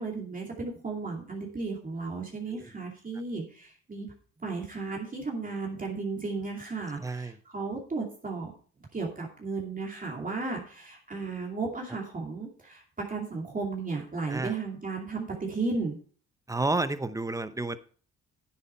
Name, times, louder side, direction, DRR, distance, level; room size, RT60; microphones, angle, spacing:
voice 1, 0.0-4.1 4.4-8.5 8.9-16.0, right 3 dB, 25° right, -1 dB, 2.7 m, -34 dB
voice 2, 7.0-7.4 14.3-14.5 16.5-17.8, right 2 dB, 10° right, 13 dB, 0.7 m, -31 dB
9.9 x 8.3 x 4.4 m, 0.42 s
cardioid pair, 90°, 30 cm